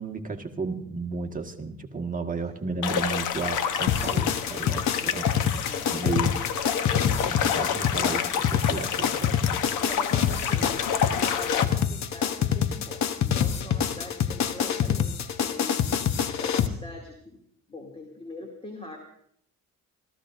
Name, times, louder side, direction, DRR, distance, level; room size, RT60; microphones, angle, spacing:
voice 1, 0.0-6.4 7.0-9.5, right 4 dB, 25° right, 4 dB, 1.6 m, -34 dB
sound 1, 2.8-11.6, left 8 dB, 85° left, 1.1 m, -29 dB
sound 2, 3.9-16.7, left 9 dB, 65° left, 1.0 m, -26 dB
voice 2, 5.0-6.0 9.8-15.9 16.4-17.4 17.7-19.0, left 1 dB, 20° left, 0 dB, 2.7 m, -42 dB
26.0 x 15.5 x 2.6 m, 0.69 s
cardioid pair, 90°, 30 cm